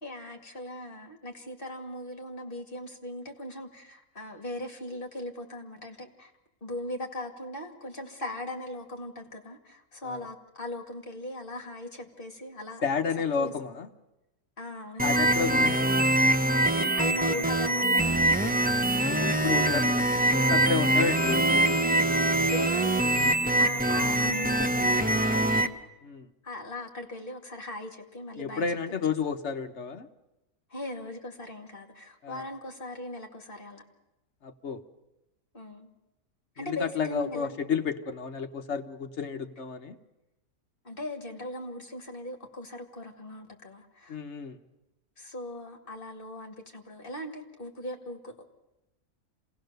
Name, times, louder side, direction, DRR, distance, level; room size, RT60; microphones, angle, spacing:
voice 1, 0.0-6.3 6.6-12.8 13.4-13.5 14.6-16.0 16.7-18.6 22.3-25.8 26.4-28.7 30.7-33.8 35.5-35.9 36.6-37.6 40.8-44.2 45.2-48.4, left 1 dB, 35° left, 4 dB, 2.2 m, -39 dB
voice 2, 12.8-13.9 15.0-15.8 19.0-21.8 26.0-26.3 28.4-30.1 32.2-32.4 34.4-34.8 36.6-40.0 44.1-44.6, left 6 dB, 55° left, 7 dB, 1.1 m, -31 dB
sound 1, 15.0-25.7, right 1 dB, 15° right, 0.3 m, -24 dB
26.5 x 17.5 x 6.7 m, 0.97 s
omnidirectional pair, 1.6 m